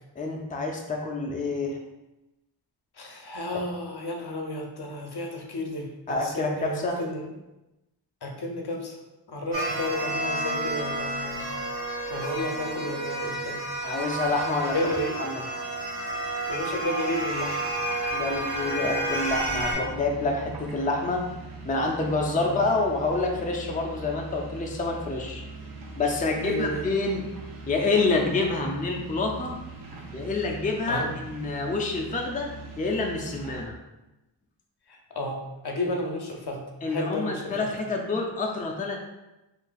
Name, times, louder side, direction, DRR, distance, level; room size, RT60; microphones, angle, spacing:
voice 1, 0.2-1.8 3.5-3.6 6.1-7.0 13.8-15.4 18.1-21.2 21.6-25.4 26.0-27.2 27.7-29.6 30.1-33.8 36.8-39.0, left 3 dB, 20° left, 1 dB, 0.4 m, -27 dB
voice 2, 3.0-7.3 8.2-8.9 9.3-11.5 12.1-13.6 14.7-15.1 16.5-17.6 22.4-22.6 26.3-26.8 30.9-31.1 35.2-37.5, left 1 dB, 60° left, 1 dB, 0.6 m, -32 dB
sound 1, 9.5-19.7, right 1 dB, 90° right, 1.3 m, -30 dB
sound 2, 19.5-33.6, right 2 dB, 50° right, 0.7 m, -41 dB
2.6 x 2.3 x 3.9 m, 0.99 s
wide cardioid pair, 45°, 44 cm